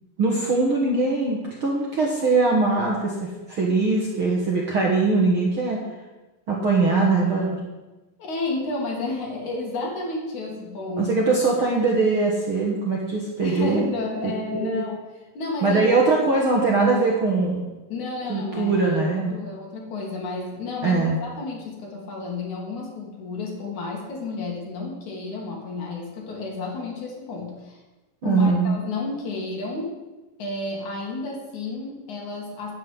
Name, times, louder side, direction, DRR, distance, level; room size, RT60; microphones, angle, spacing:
voice 1, 0.2-5.8 6.5-7.6 11.0-13.9 14.2-14.8 15.6-17.6 18.3-19.4 20.8-21.2 28.2-28.7, right 3 dB, 50° right, -2 dB, 1.8 m, -21 dB
voice 2, 8.2-11.1 13.4-15.0 15.4-15.8 16.2-16.3 17.9-27.8 28.2-29.9 30.4-32.7, left 3 dB, 60° left, -1 dB, 3.6 m, -31 dB
9.1 x 8.5 x 7.7 m, 1.1 s
omnidirectional pair, 4.1 m